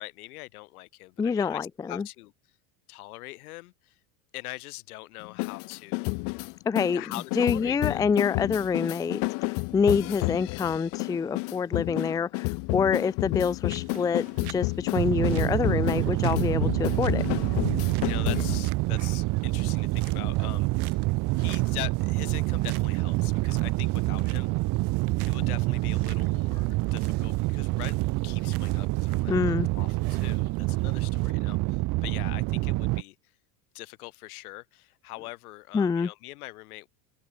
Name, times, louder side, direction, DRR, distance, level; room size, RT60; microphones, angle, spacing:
voice 1, 0.0-2.3 2.9-3.9 4.3-6.2 6.9-8.0 18.0-21.0 21.4-24.5 25.2-33.2 33.7-36.9, left 20 dB, 80° left, 6.4 m, -42 dB
voice 2, 1.2-2.0 6.7-7.0 7.4-9.2 9.7-17.2 29.3-29.7 35.7-36.1, left 6 dB, 10° left, 0.4 m, -26 dB
sound 1, 5.2-18.7, left 39 dB, 50° left, 0.6 m, -31 dB
sound 2, 13.7-31.3, right 22 dB, 75° right, 2.7 m, -48 dB
sound 3, 14.9-33.0, right 22 dB, 45° right, 0.8 m, -27 dB
supercardioid pair, 135°, 44 cm